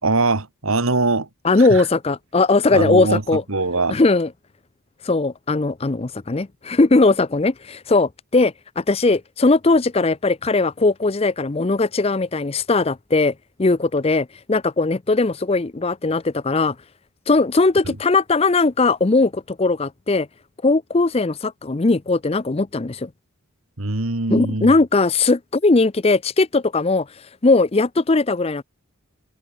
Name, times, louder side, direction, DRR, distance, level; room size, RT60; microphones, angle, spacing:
voice 1, 0.0-1.3 1.6-1.8 2.7-4.0 17.9-18.0 23.8-24.7, right 3 dB, 75° right, 2.0 m, -22 dB
voice 2, 1.4-3.4 3.9-4.3 5.0-13.3 13.6-16.8 17.3-20.3 20.6-23.1 24.3-27.1 27.4-28.6, left 3 dB, 25° left, 0.5 m, -19 dB
head